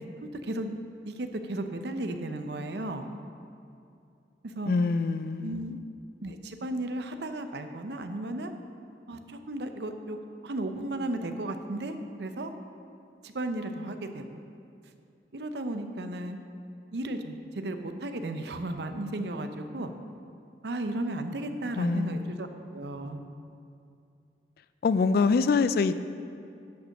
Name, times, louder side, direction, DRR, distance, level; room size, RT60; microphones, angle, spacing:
voice 1, 0.4-0.7 1.0-3.1 4.4-4.7 5.4-5.8 6.2-8.5 9.1-10.2 10.4-12.5 13.2-14.4 15.3-16.4 16.9-19.9 20.6-23.3, right 1 dB, 65° right, 7 dB, 0.6 m, -34 dB
voice 2, 4.7-5.7 21.8-22.3 24.8-25.9, left 4 dB, 55° left, 12 dB, 0.3 m, -25 dB
10.5 x 5.2 x 6.5 m, 2.5 s
head